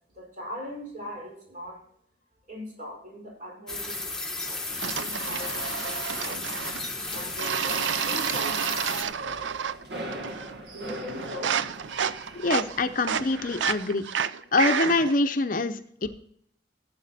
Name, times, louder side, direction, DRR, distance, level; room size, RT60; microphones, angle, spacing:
voice 1, 0.1-1.8 2.5-4.2 4.4-4.6 4.9-6.6 7.1-9.5 10.7-11.6 16.0-16.1, left 1 dB, 45° right, -1 dB, 5.0 m, -40 dB
sound 1, 3.7-9.0, left 3 dB, 5° left, 1.2 m, -34 dB
sound 2, 4.7-13.9, right 1 dB, 70° right, 1.9 m, -42 dB
sound 3, 4.8-6.9 7.4-9.8 10.1-10.6 10.9-15.2, right 7 dB, 90° right, 0.5 m, -30 dB
voice 2, 12.4-14.0 14.5-16.1, left 2 dB, 45° left, 9 dB, 0.6 m, -25 dB
13.5 x 7.9 x 4.1 m, 0.68 s
head